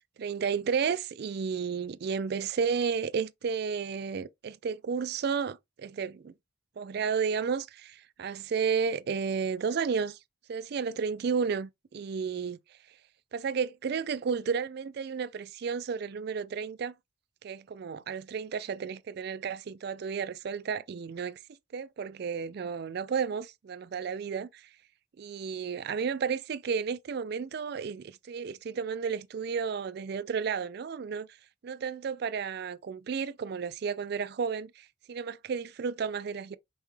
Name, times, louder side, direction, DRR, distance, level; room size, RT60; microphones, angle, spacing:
voice 1, 0.2-6.3 6.8-10.2 10.5-12.6 13.3-16.9 17.4-21.4 21.7-24.7 25.2-31.3 31.6-36.6, right 6 dB, 55° right, 0.3 m, -32 dB
5.4 x 2.2 x 3.1 m
head